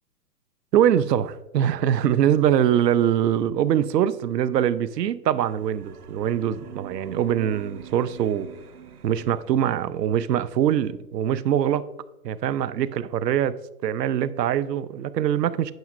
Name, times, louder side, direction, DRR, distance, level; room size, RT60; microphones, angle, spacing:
voice 1, 0.7-8.5 9.0-11.8 12.2-13.5 13.8-15.7, right 10 dB, 85° right, 16 dB, 0.6 m, -23 dB
sound 1, 5.4-10.1, right 9 dB, 70° right, 1.0 m, -44 dB
9.1 x 6.5 x 2.5 m, 0.97 s
hypercardioid pair, 155°, 48 cm